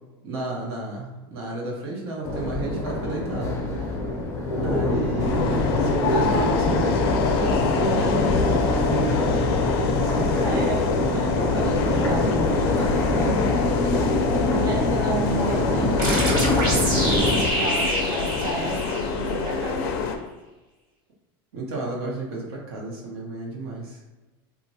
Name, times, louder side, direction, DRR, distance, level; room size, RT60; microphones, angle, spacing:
voice 1, 0.2-3.5 4.6-9.6 9.9-10.4 21.5-24.0, right 2 dB, 90° right, -3 dB, 0.9 m, -32 dB
Crowd, 2.2-17.4, left 2 dB, 25° left, 0.6 m, -24 dB
sound 1, 5.2-20.2, left 5 dB, 75° left, 0.4 m, -26 dB
voice 2, 10.4-13.7 14.6-20.0, right 2 dB, 30° right, -1 dB, 0.6 m, -32 dB
sound 2, 16.0-19.5, right 1 dB, 60° right, 1.4 m, -27 dB
3.0 x 2.4 x 2.7 m, 1.1 s
supercardioid pair, 135°, 13 cm